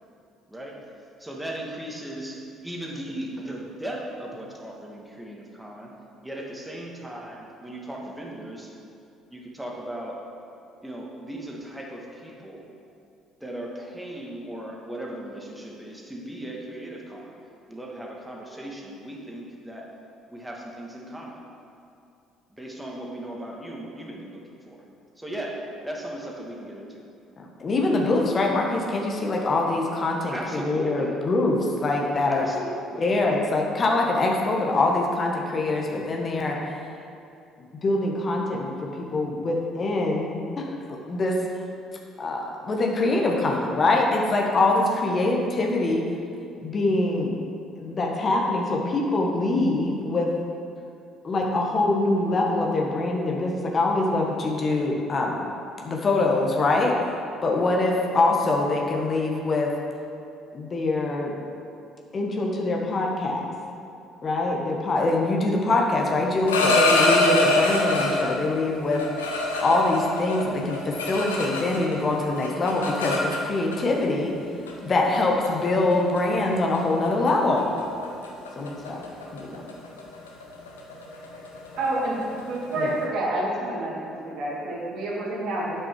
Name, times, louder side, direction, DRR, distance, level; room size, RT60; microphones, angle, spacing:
voice 1, 1.2-5.9 6.2-8.7 9.3-10.2 10.8-12.6 13.4-17.3 17.7-19.9 20.3-21.4 22.5-24.8 25.2-25.6 25.8-27.0 30.3-31.2 32.3-33.1, right 1 dB, 5° right, -2 dB, 1.8 m, -37 dB
voice 2, 27.4-32.5 33.0-36.6 37.8-40.7 41.1-41.4 42.2-46.0 46.6-47.3 47.8-50.3 51.2-55.4 55.8-57.0 57.4-59.7 60.5-61.4 62.1-63.5 64.2-74.3 74.8-77.7 78.6-79.0 79.3-79.7 82.8-82.9, left 2 dB, 40° left, 0 dB, 1.3 m, -24 dB
sound 1, 66.3-68.4 68.9-72.0 72.2-73.8 74.7-74.8 75.1-75.5 75.9-76.2 76.5-76.8 77.0-77.3 77.6-83.0, left 2 dB, 90° left, 0.9 m, -25 dB
voice 3, 81.8-85.8, right 1 dB, 65° right, -5 dB, 2.2 m, -28 dB
8.1 x 6.3 x 4.7 m, 2.5 s
hypercardioid pair, 55°, 0 cm